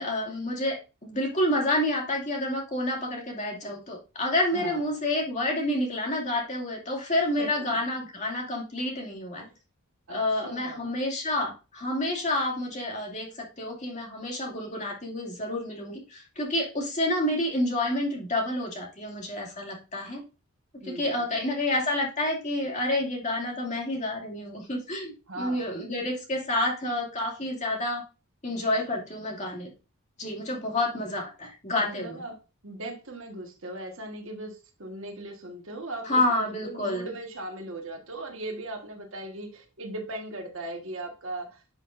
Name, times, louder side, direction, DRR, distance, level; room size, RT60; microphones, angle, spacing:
voice 1, 0.0-9.4 10.1-20.2 20.8-28.0 28.4-29.7 30.2-32.2 36.0-37.1, left 1 dB, 35° left, 0 dB, 2.5 m, -29 dB
voice 2, 7.4-7.8 10.1-10.9 20.8-21.3 25.3-25.8 31.8-32.4 32.6-41.6, right 2 dB, 65° right, 3 dB, 1.6 m, -38 dB
11.5 x 5.7 x 2.6 m, 0.30 s
head